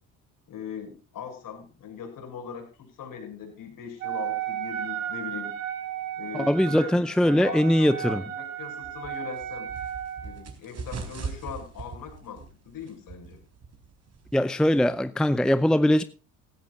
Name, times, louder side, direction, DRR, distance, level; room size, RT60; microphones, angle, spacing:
voice 1, 0.5-5.5 6.2-9.7 10.2-13.4, left 7 dB, 55° left, 6.6 m, -40 dB
Wind instrument woodwind instrument, 4.0-10.5, right 11 dB, 80° right, 2.1 m, -34 dB
voice 2, 6.3-8.2 14.3-16.0, left 1 dB, ahead, 0.7 m, -21 dB
sound 1, 8.8-15.0, right 5 dB, 40° right, 3.9 m, -41 dB
16.5 x 15.5 x 2.4 m
hypercardioid pair, 55°, 39 cm